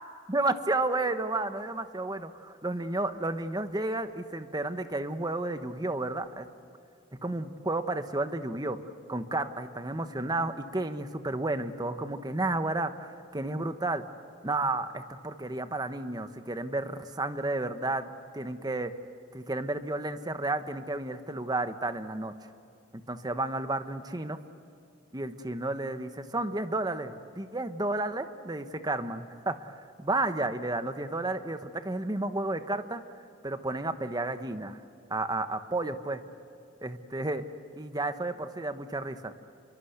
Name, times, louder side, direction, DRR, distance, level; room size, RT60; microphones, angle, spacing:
voice 1, 0.3-6.5 7.2-8.8 9.1-14.0 14.4-18.9 19.3-22.3 23.1-24.4 25.1-33.0 33.4-34.8 35.1-36.2 36.8-37.4 37.8-39.3, right 2 dB, 20° right, 9 dB, 1.1 m, -32 dB
27.0 x 23.5 x 8.1 m, 2.5 s
head